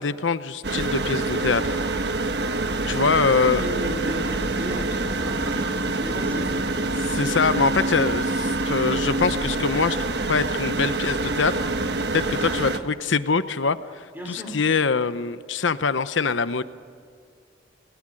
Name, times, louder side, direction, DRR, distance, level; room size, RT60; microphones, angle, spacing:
voice 1, 0.0-1.8 2.9-3.7 7.1-11.7 12.1-16.6, left 4 dB, 85° left, 13 dB, 0.8 m, -24 dB
sound 1, 0.6-12.8, right 2 dB, 60° right, 1.4 m, -26 dB
voice 2, 3.4-6.8 14.1-14.6, equal, 10° right, 2 dB, 4.8 m, -35 dB
29.5 x 20.5 x 7.7 m, 2.2 s
head